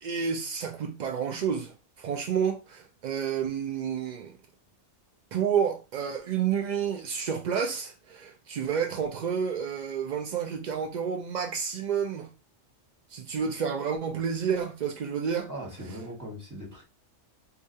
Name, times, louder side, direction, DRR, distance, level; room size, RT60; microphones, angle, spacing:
voice 1, 0.0-4.3 5.3-12.3 13.1-15.5, right 7 dB, 70° right, 0.4 m, -30 dB
voice 2, 15.5-16.8, equal, 15° right, 1.4 m, -39 dB
4.7 x 2.4 x 2.7 m
omnidirectional pair, 1.3 m